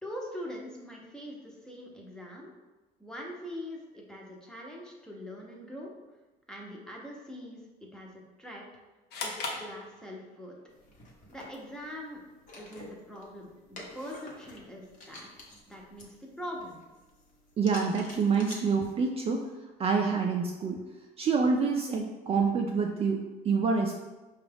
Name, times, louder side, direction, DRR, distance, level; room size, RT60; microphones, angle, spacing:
voice 1, 0.0-2.5 3.0-5.9 6.5-8.1 8.4-8.6 9.2-10.6 11.3-12.2 12.5-16.8, equal, 5° left, -2 dB, 0.8 m, -43 dB
sound 1, 9.1-10.5, left 3 dB, 80° left, 0.7 m, -37 dB
sound 2, 10.7-18.6, left 2 dB, 50° left, 1.0 m, -50 dB
voice 2, 17.6-19.4 19.8-20.8 21.2-23.2 23.4-23.9, right 5 dB, 35° right, 1 dB, 0.4 m, -27 dB
4.9 x 2.4 x 3.3 m, 1.2 s
cardioid pair, 110°, 17 cm